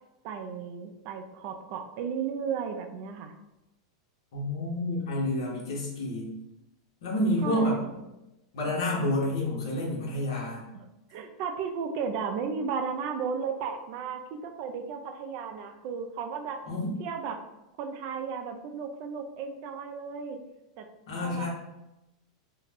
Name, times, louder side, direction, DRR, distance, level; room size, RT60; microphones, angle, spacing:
voice 1, 0.2-3.3 7.4-8.0 10.7-10.9 11.1-16.6 17.0-17.4 17.8-20.4 20.8-20.9 21.2-21.5, right 6 dB, 40° right, 6 dB, 0.3 m, -34 dB
voice 2, 4.3-6.3 7.0-7.8 8.5-10.6 16.7-16.9 21.1-21.5, left 1 dB, 70° left, -4 dB, 0.9 m, -29 dB
2.4 x 2.1 x 3.3 m, 0.94 s
supercardioid pair, 160°, 3 cm